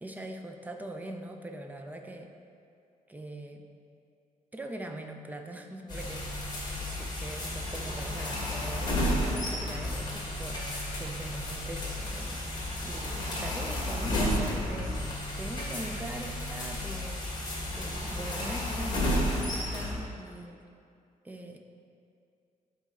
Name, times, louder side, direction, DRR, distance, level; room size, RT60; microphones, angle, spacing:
voice 1, 0.0-2.3 3.1-3.6 4.5-6.3 6.8-12.4 12.8-15.0 15.4-17.2 17.7-19.4 19.7-20.6 21.2-21.6, right 1 dB, 10° right, 4 dB, 0.5 m, -42 dB
sound 1, 5.9-19.9, left 1 dB, 30° left, 1.5 m, -32 dB
11.0 x 4.1 x 3.7 m, 2.4 s
wide cardioid pair, 160°, 14 cm